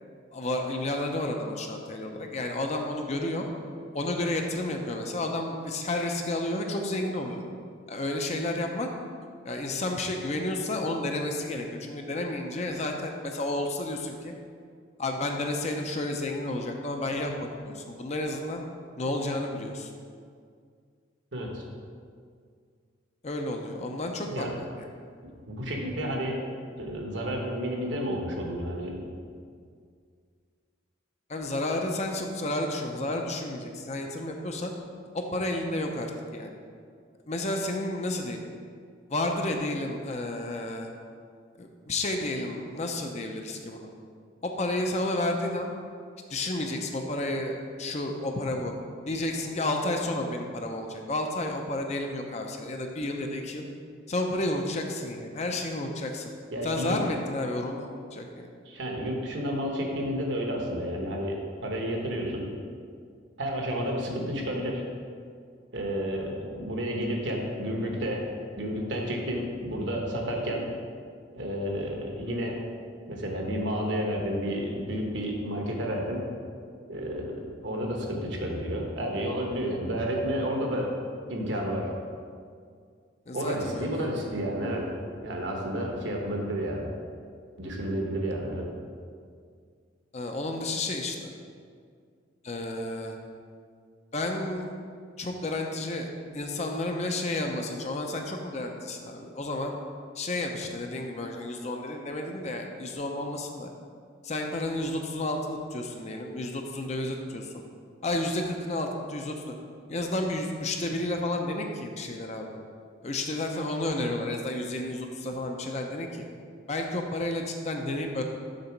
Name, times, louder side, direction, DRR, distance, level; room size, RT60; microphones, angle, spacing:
voice 1, 0.3-3.5 3.9-7.4 7.9-8.9 9.4-14.3 15.0-18.6 19.0-19.9 23.2-24.5 31.3-34.7 35.1-36.5 37.3-38.4 39.1-40.9 41.6-43.9 44.4-45.7 46.3-48.7 49.1-53.7 54.1-56.3 56.6-58.5 83.3-84.1 90.1-91.3 92.4-93.2 94.1-94.7 95.2-96.1 96.3-99.8 100.2-103.7 104.2-107.6 108.0-109.4 109.9-112.5 113.0-116.2 116.7-118.2, left 1 dB, 35° left, 3 dB, 0.6 m, -31 dB
voice 2, 21.3-21.6 24.3-24.6 25.2-26.4 26.8-29.1 56.5-57.0 58.6-62.5 63.4-64.8 65.7-68.2 68.5-70.7 71.3-72.6 73.1-76.3 76.9-80.9 81.3-81.9 83.3-84.9 85.2-86.9 87.6-88.7, equal, 65° right, 0 dB, 1.1 m, -31 dB
6.6 x 4.1 x 5.9 m, 2.1 s
head